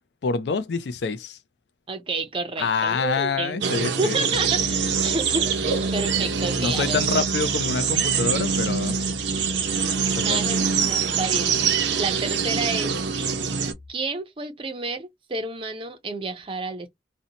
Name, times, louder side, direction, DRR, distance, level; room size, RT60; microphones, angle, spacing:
voice 1, 0.2-1.4 2.6-4.2 6.5-9.0 10.2-10.4, left 5 dB, 70° left, 0.4 m, -26 dB
voice 2, 1.9-3.6 4.0-7.0 9.8-11.6 11.9-12.9 13.9-16.9, right 3 dB, 30° right, 0.4 m, -30 dB
sound 1, 3.6-13.7, right 6 dB, 80° right, 0.5 m, -24 dB
Piano, 4.3-13.9, left 3 dB, 40° left, 0.8 m, -40 dB
2.6 x 2.1 x 2.7 m
head